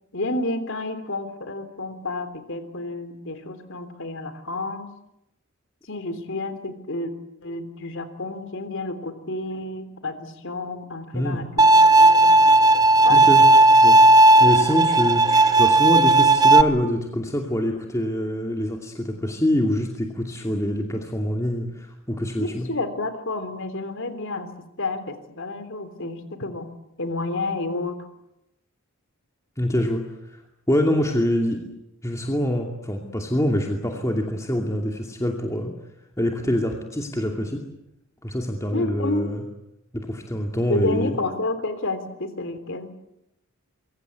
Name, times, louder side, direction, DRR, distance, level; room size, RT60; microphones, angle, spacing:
voice 1, 0.1-4.9 5.9-7.1 7.4-11.7 12.0-12.4 13.0-13.2 22.4-24.5 24.8-26.7 27.0-28.0 38.7-39.3 40.7-42.9, left 2 dB, 60° left, 11 dB, 3.5 m, -30 dB
voice 2, 11.1-11.4 13.1-13.4 13.7-14.0 14.4-22.7 29.6-30.4 30.7-31.6 32.0-35.7 36.2-37.6 38.2-39.4 39.9-41.1, equal, 15° left, 2 dB, 2.6 m, -25 dB
Bowed string instrument, 11.6-16.6, right 2 dB, 20° right, 0.9 m, -14 dB
25.5 x 23.0 x 8.3 m, 0.84 s
head